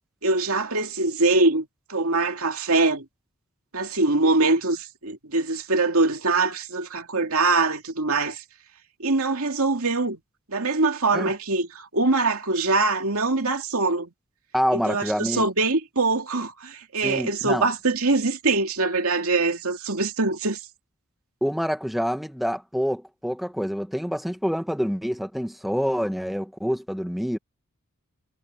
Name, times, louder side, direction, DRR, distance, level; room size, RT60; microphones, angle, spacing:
voice 1, 0.2-3.1 3.7-8.4 9.0-10.2 10.5-14.1 14.7-20.6, right 3 dB, 70° right, 2.5 m, -23 dB
voice 2, 14.5-15.4 17.0-17.7 21.4-27.4, equal, ahead, 1.4 m, -26 dB
head